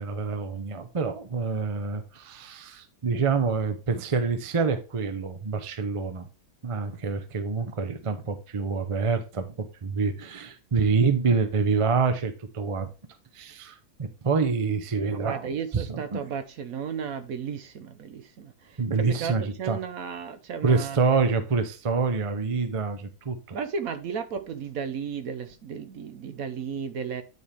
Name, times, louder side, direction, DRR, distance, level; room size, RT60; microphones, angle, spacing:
voice 1, 0.0-6.3 6.6-12.9 13.3-16.2 18.8-19.8 20.6-23.6, right 4 dB, 40° right, 0.4 m, -27 dB
voice 2, 15.2-18.5 19.1-21.0 23.5-27.2, right 6 dB, 65° right, 1.1 m, -34 dB
9.4 x 4.3 x 3.3 m
omnidirectional pair, 1.7 m